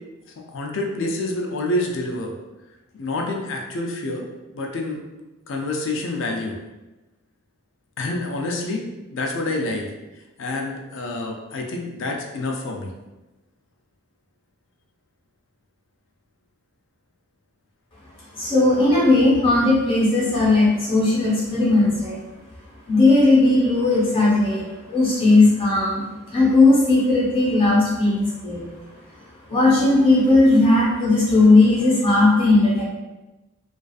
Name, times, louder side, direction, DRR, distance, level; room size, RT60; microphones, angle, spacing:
voice 1, 0.5-2.3 2.9-4.2 4.5-5.0 5.5-6.6 8.0-8.8 9.1-9.9 10.4-12.9, left 2 dB, 65° left, 1 dB, 0.4 m, -27 dB
voice 2, 18.3-22.2 22.9-26.0 26.3-28.6 29.5-32.8, left 2 dB, 25° left, -7 dB, 0.8 m, -17 dB
2.4 x 2.4 x 2.3 m, 1.1 s
head